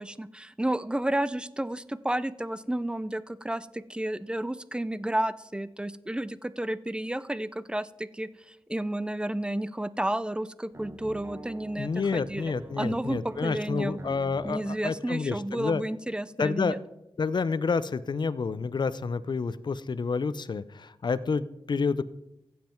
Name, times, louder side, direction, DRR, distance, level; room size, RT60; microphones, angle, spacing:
voice 1, 0.0-14.0 14.4-16.8, right 1 dB, 10° right, 17 dB, 0.4 m, -31 dB
sound 1, 10.7-14.6, right 1 dB, 25° right, 1.2 m, -45 dB
voice 2, 11.8-15.8 16.4-16.8 17.2-22.0, left 4 dB, 50° left, 16 dB, 0.5 m, -29 dB
15.0 x 7.5 x 4.5 m, 0.87 s
wide cardioid pair, 80°, 10 cm